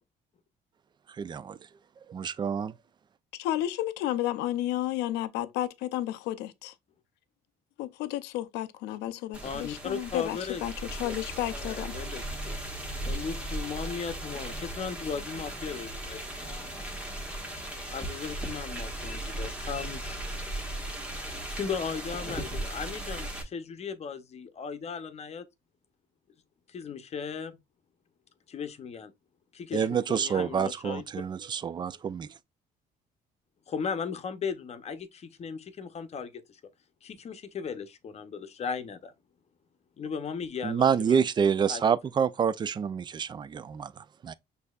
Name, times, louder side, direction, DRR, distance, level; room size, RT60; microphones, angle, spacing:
voice 1, 1.2-1.6 2.1-2.7 29.7-32.3 40.6-44.3, right 7 dB, 25° right, 0.3 m, -28 dB
voice 2, 3.3-6.7 7.8-11.9, left 13 dB, 85° left, 0.5 m, -32 dB
sound 1, 9.3-23.4, right 1 dB, 5° right, 1.3 m, -37 dB
voice 3, 9.4-10.6 11.0-11.1 11.5-12.6 13.0-16.7 17.9-20.2 21.5-25.4 26.7-27.6 28.5-29.1 29.5-31.0 33.7-36.6 37.0-39.1 40.0-41.3 41.7-41.8, left 6 dB, 40° left, 0.7 m, -37 dB
6.3 x 2.7 x 2.3 m
cardioid pair, 110°, 17 cm